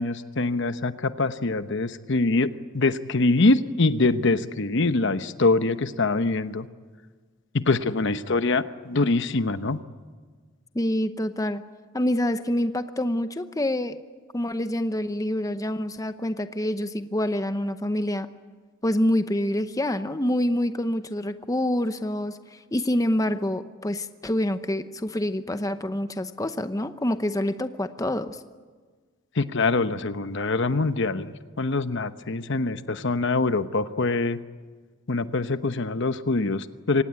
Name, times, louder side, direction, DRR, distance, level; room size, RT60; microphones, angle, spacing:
voice 1, 0.0-6.7 7.5-9.8 29.3-34.4 35.1-37.0, left 3 dB, 60° left, 11 dB, 1.0 m, -24 dB
voice 2, 10.7-11.6 11.9-14.0 14.3-18.3 18.8-28.4, left 1 dB, 15° left, 10 dB, 0.8 m, -26 dB
24.5 x 18.5 x 9.6 m, 1.5 s
head